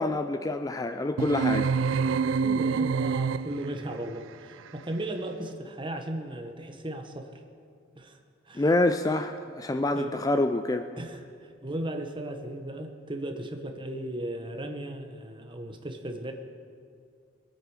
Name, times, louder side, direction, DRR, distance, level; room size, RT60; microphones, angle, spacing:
voice 1, 0.0-1.7 8.6-10.9, left 2 dB, 20° left, 8 dB, 0.3 m, -26 dB
sound 1, 1.2-3.8, right 5 dB, 80° right, 0.4 m, -26 dB
voice 2, 1.9-7.3 8.0-8.2 8.5-8.6 9.9-10.1 11.0-16.3, right 1 dB, 25° right, 4 dB, 1.1 m, -36 dB
22.0 x 8.8 x 4.9 m, 2.3 s
head